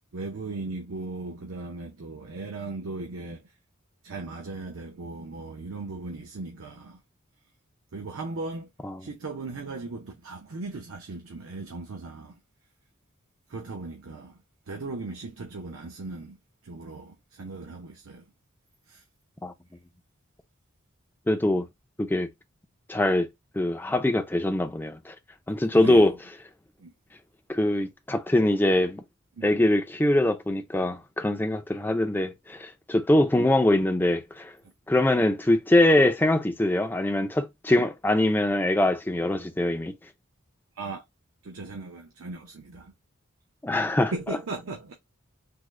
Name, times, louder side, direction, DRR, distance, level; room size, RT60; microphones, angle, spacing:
voice 1, 0.1-3.5 4.0-7.0 7.9-8.7 9.0-12.4 13.5-16.4 16.6-18.3 18.9-19.0 25.7-26.1 26.8-26.9 29.4-29.5 40.8-41.0 41.4-42.9 44.1-45.0, right 3 dB, 75° right, 0.6 m, -37 dB
voice 2, 21.3-21.7 22.0-22.3 22.9-23.3 23.5-25.1 25.5-26.1 27.5-29.0 29.4-34.5 34.9-39.9 43.6-44.1, left 1 dB, 10° left, 0.3 m, -23 dB
3.6 x 2.1 x 3.1 m
head